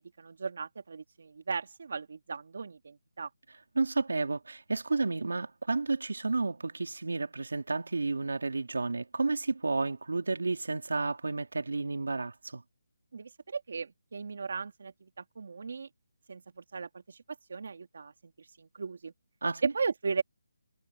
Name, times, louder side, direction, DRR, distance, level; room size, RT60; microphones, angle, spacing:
voice 1, 0.2-3.3 13.1-15.9 16.3-17.2 17.5-19.1 19.6-20.2, right 5 dB, 50° right, 2.6 m, -36 dB
voice 2, 3.8-12.6 19.4-19.7, right 3 dB, 90° right, 3.5 m, -31 dB
hypercardioid pair, 175°, 0 cm